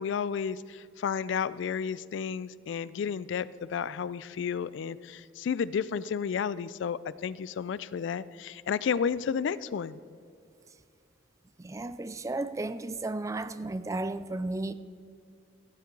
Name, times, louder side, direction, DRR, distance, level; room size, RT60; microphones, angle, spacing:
voice 1, 0.0-10.0, left 7 dB, 65° left, 0.3 m, -32 dB
voice 2, 11.6-14.7, right 2 dB, 15° right, 0.3 m, -34 dB
15.5 x 8.3 x 3.9 m
head